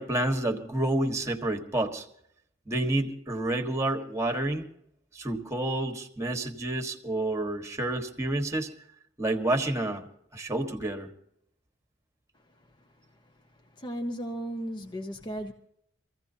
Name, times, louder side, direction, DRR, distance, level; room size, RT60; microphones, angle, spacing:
voice 1, 0.0-2.1 2.7-4.7 5.1-8.7 9.2-10.1 10.3-11.1, right 1 dB, 15° right, 1.4 m, -29 dB
voice 2, 13.8-15.5, equal, 25° left, 0.9 m, -35 dB
25.0 x 15.5 x 2.8 m
head